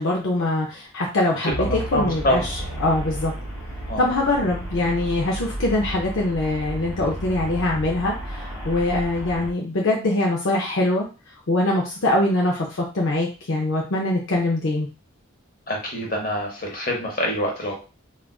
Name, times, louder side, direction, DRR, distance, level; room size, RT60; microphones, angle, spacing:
voice 1, 0.0-3.3 4.0-11.1 11.5-14.9, left 2 dB, 60° left, -1 dB, 0.5 m, -23 dB
voice 2, 1.4-2.4 3.9-4.0 15.7-17.7, equal, 40° left, 0 dB, 0.9 m, -25 dB
Traffic noise roadway noise, 1.5-9.5, right 1 dB, 20° left, 1.1 m, -33 dB
3.6 x 2.4 x 2.3 m, 0.33 s
head